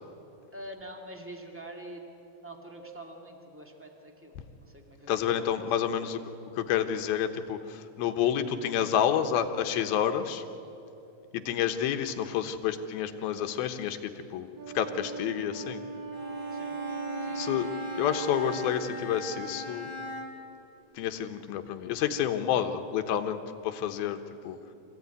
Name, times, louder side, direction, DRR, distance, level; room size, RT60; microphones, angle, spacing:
voice 1, 0.5-2.0 2.4-6.1 16.5-16.8 17.2-17.6, right 1 dB, 10° right, 2 dB, 0.8 m, -46 dB
voice 2, 5.1-6.2 6.5-10.4 11.3-14.5 14.7-15.8 17.4-17.7 17.9-19.9 21.0-24.6, left 9 dB, 75° left, 7 dB, 2.9 m, -29 dB
Wind instrument woodwind instrument, 14.6-20.0, right 5 dB, 50° right, 3.5 m, -39 dB
Bowed string instrument, 16.1-20.6, left 1 dB, 25° left, 1.3 m, -39 dB
26.0 x 16.0 x 9.4 m, 2.8 s
omnidirectional pair, 4.4 m